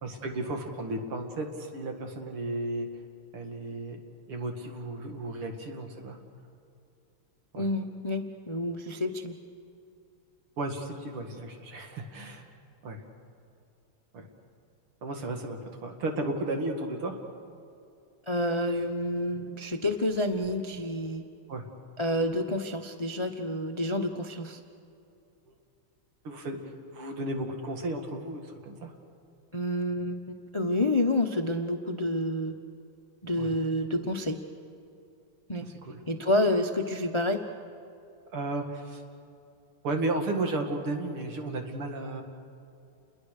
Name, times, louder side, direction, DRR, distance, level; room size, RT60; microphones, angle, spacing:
voice 1, 0.0-2.9 3.3-4.0 4.3-6.2 7.5-7.7 10.6-12.5 12.8-13.0 14.1-14.3 15.0-17.2 21.5-21.6 25.5-25.6 26.2-26.6 26.9-28.9 33.4-33.5 35.6-36.0 38.3-39.0 39.8-42.2, right 2 dB, 80° right, 3 dB, 3.1 m, -34 dB
voice 2, 7.6-9.4 18.3-21.2 22.0-24.6 29.5-32.5 33.2-34.4 35.5-35.7 36.1-37.4, left 1 dB, 30° left, 6 dB, 0.5 m, -29 dB
29.0 x 22.0 x 6.7 m, 2.6 s
omnidirectional pair, 2.4 m